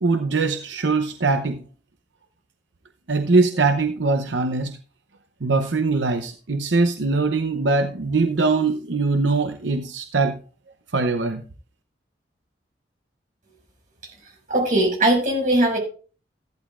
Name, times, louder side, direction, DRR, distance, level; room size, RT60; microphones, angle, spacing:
voice 1, 0.0-1.6 3.1-4.8 5.4-10.4 10.9-11.4, right 3 dB, 85° right, 7 dB, 0.8 m, -22 dB
voice 2, 14.5-15.8, right 1 dB, 45° right, 0 dB, 5.9 m, -19 dB
14.0 x 11.5 x 2.5 m, 0.38 s
head